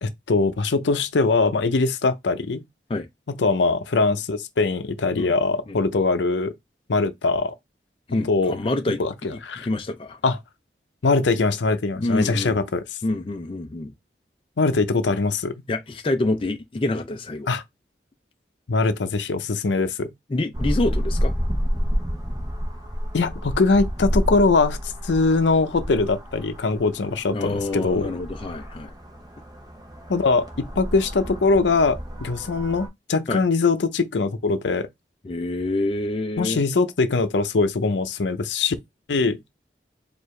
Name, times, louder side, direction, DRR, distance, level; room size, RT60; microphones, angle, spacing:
voice 1, 0.0-2.6 3.3-6.5 6.9-7.5 8.3-8.6 9.0-9.7 10.2-10.4 11.0-12.8 14.6-15.5 17.5-17.6 18.7-20.1 23.1-24.8 25.0-28.1 30.1-34.9 36.4-38.8 39.1-39.4, left 3 dB, 85° left, 0.6 m, -22 dB
voice 2, 8.1-9.0 9.3-10.2 12.0-12.6 13.0-13.9 15.7-17.5 20.3-21.3 27.3-28.9 33.3-33.4 35.2-36.6, left 2 dB, 30° left, 0.4 m, -26 dB
sound 1, 20.5-32.9, equal, 20° right, 0.8 m, -30 dB
4.6 x 2.5 x 3.1 m
head